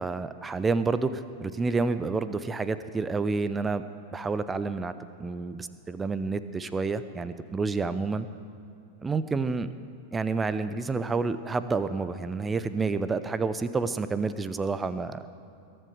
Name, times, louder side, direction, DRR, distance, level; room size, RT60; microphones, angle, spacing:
voice 1, 0.0-3.8 4.1-4.9 5.2-8.3 9.0-9.7 10.1-15.2, right 4 dB, 15° right, 13 dB, 0.7 m, -29 dB
21.5 x 8.0 x 6.7 m, 2.6 s
figure-of-eight pair, 90°, 0 cm